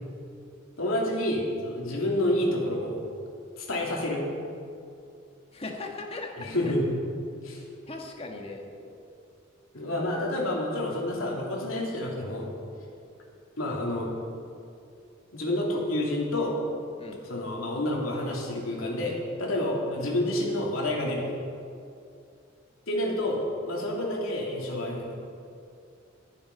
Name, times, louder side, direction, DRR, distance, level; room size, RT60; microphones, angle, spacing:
voice 1, 0.8-3.0 3.6-4.3 6.4-6.9 7.4-7.6 9.7-12.5 13.6-14.1 15.3-16.6 17.3-21.2 22.9-23.4 23.7-25.1, left 1 dB, 85° left, -2 dB, 2.9 m, -29 dB
voice 2, 5.5-6.7 7.9-8.7 17.0-17.2, left 2 dB, 30° left, 2 dB, 1.4 m, -38 dB
21.0 x 7.4 x 5.4 m, 2.5 s
head